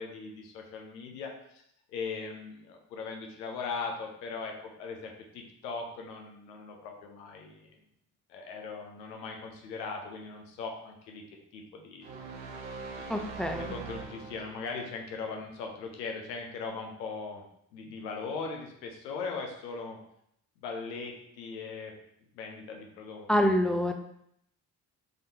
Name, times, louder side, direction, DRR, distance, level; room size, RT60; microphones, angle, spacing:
voice 1, 0.0-1.6 1.9-7.7 8.3-11.2 11.5-12.1 13.0-17.4 17.7-20.0 20.6-21.9 22.3-23.2, left 4 dB, 85° left, 2 dB, 0.7 m, -39 dB
sound 1, 12.0-14.8, right 4 dB, 70° right, 0.8 m, -41 dB
voice 2, 13.1-13.7 23.3-23.9, equal, ahead, 4 dB, 0.4 m, -26 dB
3.8 x 3.4 x 2.8 m, 0.73 s
hypercardioid pair, 40°, 50 cm